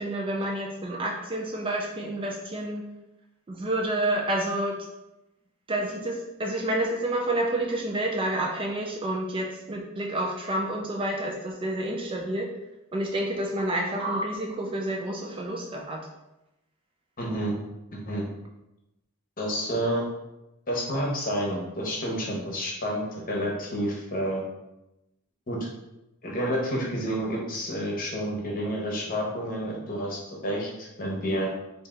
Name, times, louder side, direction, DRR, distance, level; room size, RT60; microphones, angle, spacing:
voice 1, 0.0-2.8 3.5-4.8 5.7-12.5 12.9-16.0, right 1 dB, 25° right, 0 dB, 0.4 m, -29 dB
voice 2, 17.2-17.5 17.9-18.3 19.4-20.1 20.7-24.4 25.5-25.7 26.2-31.5, equal, 40° left, -2 dB, 0.9 m, -29 dB
3.4 x 2.7 x 3.7 m, 0.93 s
head